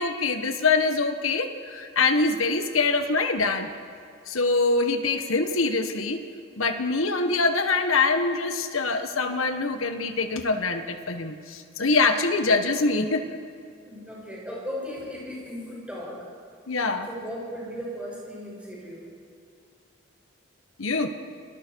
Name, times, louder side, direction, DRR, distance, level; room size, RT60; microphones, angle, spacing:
voice 1, 0.0-3.7 4.3-6.2 6.6-13.4 16.7-17.1 20.8-21.1, left 3 dB, 90° left, 7 dB, 1.5 m, -24 dB
voice 2, 13.8-16.3 17.1-19.1, equal, 5° right, -5 dB, 6.5 m, -36 dB
29.5 x 19.0 x 4.7 m, 2.4 s
head